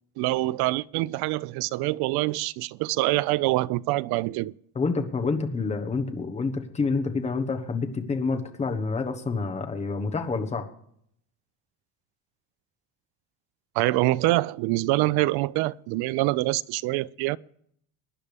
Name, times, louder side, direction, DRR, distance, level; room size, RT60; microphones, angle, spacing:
voice 1, 0.2-4.5 13.8-17.4, right 19 dB, 70° right, 0.5 m, -25 dB
voice 2, 4.7-10.7, left 4 dB, 15° left, 1.1 m, -28 dB
22.5 x 10.0 x 3.4 m
cardioid pair, 175°, 39 cm